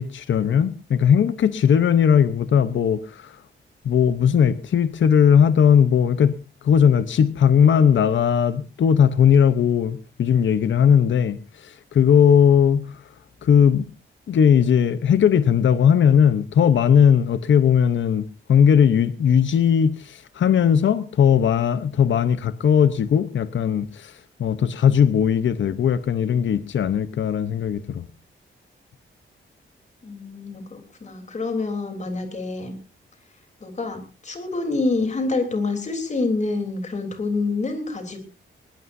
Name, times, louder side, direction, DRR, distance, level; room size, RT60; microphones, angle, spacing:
voice 1, 0.0-3.4 3.8-6.4 6.6-13.0 13.4-13.8 14.3-28.0, left 8 dB, 65° left, 0.9 m, -18 dB
voice 2, 30.0-32.7 33.6-38.2, left 3 dB, 35° left, 3.4 m, -27 dB
21.0 x 18.5 x 2.7 m
wide cardioid pair, 175°, 21 cm